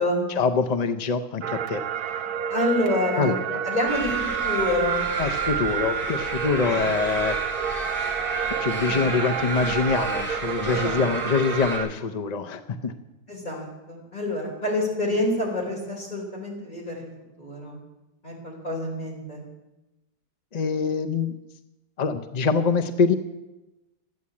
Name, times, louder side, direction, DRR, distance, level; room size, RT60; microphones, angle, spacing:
voice 1, 0.4-1.8 3.2-3.6 5.2-7.4 8.6-12.9 20.5-21.4 22.0-23.1, left 5 dB, 55° left, 9 dB, 0.4 m, -24 dB
sound 1, 1.4-11.9, right 9 dB, 80° right, 1.2 m, -29 dB
voice 2, 2.5-3.4 3.6-4.1 4.4-5.1 6.7-6.9 8.9-9.0 10.7-11.0 13.3-17.1 17.4-17.8 18.2-19.4, left 1 dB, 30° left, -3 dB, 4.5 m, -27 dB
sound 2, 3.9-11.8, right 1 dB, 5° left, 4.7 m, -33 dB
13.0 x 9.6 x 8.4 m, 1.0 s
omnidirectional pair, 1.6 m